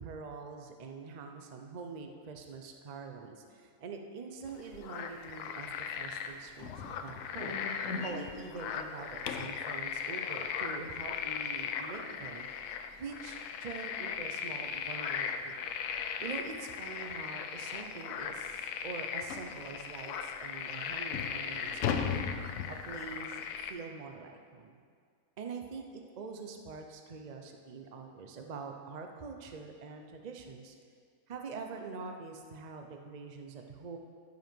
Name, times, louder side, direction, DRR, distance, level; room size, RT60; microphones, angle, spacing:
voice 1, 0.0-7.6 8.0-12.5 12.9-15.6 16.2-22.2 22.7-23.4 23.7-24.8 25.4-30.7 31.3-34.0, right 4 dB, 60° right, 4 dB, 0.4 m, -44 dB
sound 1, 4.5-23.7, left 7 dB, 85° left, 1.1 m, -38 dB
sound 2, 6.6-9.7 12.5-12.6 13.1-13.3 13.6-13.7 14.2-14.3 15.4-15.5 15.9-16.1 16.7-16.8 17.2-17.3 17.8-17.9 19.3-19.6 20.3-20.4 20.9-23.2, left 6 dB, 65° left, 0.9 m, -38 dB
14.0 x 5.5 x 4.5 m, 2.1 s
omnidirectional pair, 1.6 m